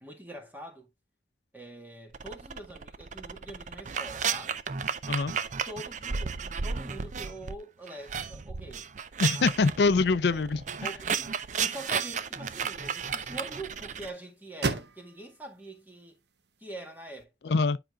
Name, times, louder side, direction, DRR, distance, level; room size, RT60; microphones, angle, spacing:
voice 1, 0.0-0.9 1.5-4.6 5.6-8.9 10.8-16.2 16.6-17.5, right 1 dB, 10° right, 1.6 m, -44 dB
sound 1, 2.1-7.6 7.9-14.1, right 6 dB, 45° right, 0.5 m, -33 dB
voice 2, 9.2-10.6 17.4-17.8, left 4 dB, 70° left, 0.4 m, -24 dB
sound 2, 11.1-17.2, right 3 dB, 70° right, 0.8 m, -40 dB
10.0 x 5.0 x 2.3 m
head